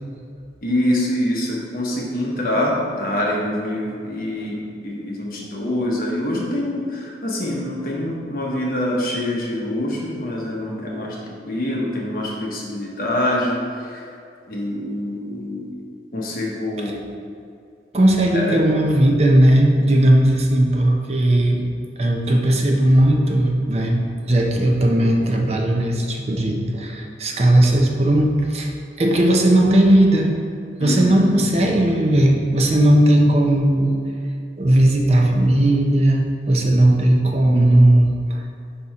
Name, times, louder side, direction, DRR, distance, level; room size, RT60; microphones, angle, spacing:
voice 1, 0.6-14.2 14.5-15.7 16.1-17.0 18.3-18.6 30.8-31.3, left 1 dB, 55° left, -3 dB, 1.1 m, -25 dB
voice 2, 17.9-21.6 22.0-28.7 29.0-30.3 30.8-33.9 34.6-38.4, right 1 dB, 35° right, 1 dB, 0.6 m, -17 dB
5.4 x 4.2 x 4.8 m, 2.5 s
head